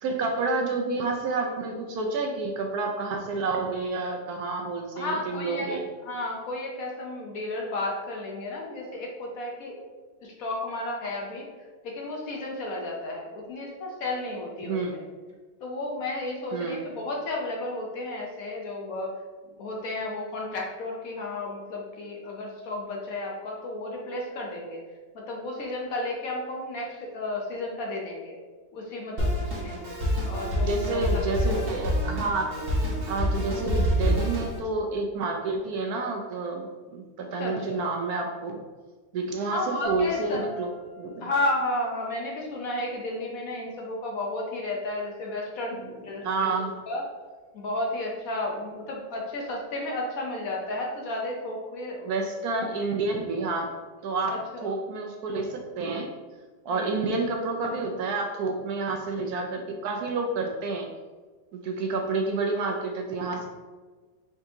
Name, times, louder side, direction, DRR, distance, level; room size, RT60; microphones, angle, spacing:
voice 1, 0.0-5.8 14.6-15.0 16.5-16.9 30.6-32.4 33.1-38.6 39.1-41.3 46.2-46.7 52.1-53.7 54.0-54.3 54.6-56.1 56.6-60.9 61.5-63.5, right 3 dB, 70° right, 2 dB, 0.9 m, -29 dB
voice 2, 5.0-9.7 10.2-11.4 11.8-15.0 15.6-19.1 19.6-24.8 25.3-28.4 28.7-29.8 30.2-31.5 37.3-37.8 39.5-40.4 41.2-46.5 46.9-47.0 47.5-52.2 52.6-52.7 54.3-54.7 56.7-57.0, left 2 dB, 65° left, -1 dB, 1.0 m, -33 dB
Drum kit, 29.2-34.6, equal, 40° right, 1.1 m, -27 dB
sound 1, 39.8-42.8, right 1 dB, 5° left, 1.2 m, -41 dB
4.8 x 3.6 x 2.7 m, 1.4 s
omnidirectional pair, 1.9 m